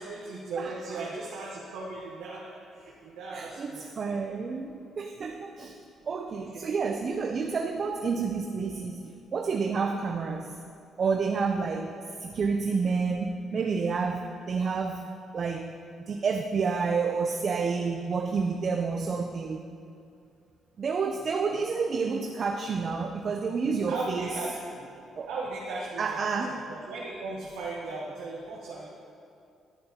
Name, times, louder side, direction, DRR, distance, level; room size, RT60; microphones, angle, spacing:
voice 1, 0.0-3.9 6.3-6.9 21.2-21.6 23.9-24.9 25.3-28.9, right 3 dB, 90° right, -4 dB, 1.0 m, -37 dB
voice 2, 3.3-5.8 6.1-10.6 11.0-12.0 12.2-15.1 15.3-15.7 16.1-19.6 20.8-24.3 25.2-25.3 26.0-26.6, right 5 dB, 50° right, 4 dB, 0.4 m, -29 dB
10.5 x 7.6 x 2.8 m, 2.5 s
cardioid pair, 90°, 0 cm